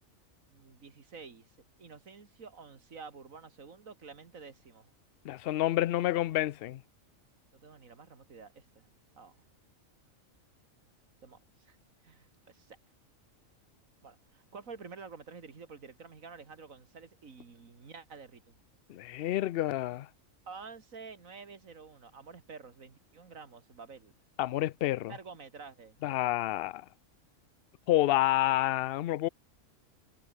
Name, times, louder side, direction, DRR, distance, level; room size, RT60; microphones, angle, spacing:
voice 1, 0.5-4.9 7.5-8.9 9.2-9.4 11.2-11.8 12.0-12.8 14.0-18.6 20.5-24.1 25.1-26.3, right 5 dB, 75° right, 2.5 m, -49 dB
voice 2, 5.2-6.8 18.9-20.1 24.4-25.1 26.0-26.8 27.9-29.3, left 14 dB, 65° left, 0.6 m, -29 dB
omnidirectional pair, 1.4 m